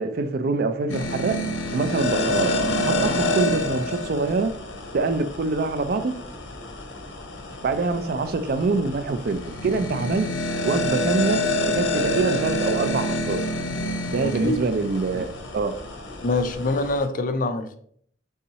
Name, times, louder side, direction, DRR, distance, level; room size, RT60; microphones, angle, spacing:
voice 1, 0.0-1.4 1.7-2.5 2.9-4.6 4.9-6.2 7.6-10.3 10.6-13.5 14.1-15.7, right 3 dB, 50° right, 0.4 m, -25 dB
sound 1, 0.9-17.1, left 1 dB, 75° left, 0.8 m, -28 dB
voice 2, 14.0-14.6 16.2-17.8, left 2 dB, 45° left, 0.4 m, -25 dB
4.1 x 3.6 x 2.8 m
head